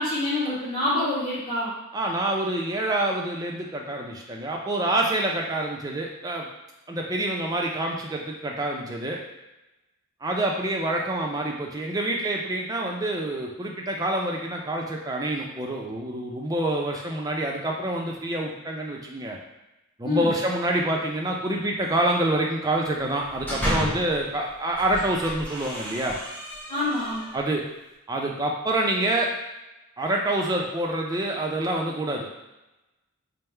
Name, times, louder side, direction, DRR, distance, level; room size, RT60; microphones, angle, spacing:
voice 1, 0.0-1.7 20.0-20.3 26.7-27.2, left 2 dB, 25° left, -9 dB, 1.5 m, -26 dB
voice 2, 1.9-6.5 6.9-9.2 10.2-19.4 20.0-26.2 27.3-27.6 28.1-29.3 30.0-32.3, right 1 dB, 15° right, -1 dB, 0.4 m, -27 dB
sound 1, 23.1-24.2 24.7-27.5, equal, 5° left, 0.8 m, -32 dB
3.5 x 2.0 x 4.3 m, 0.98 s
head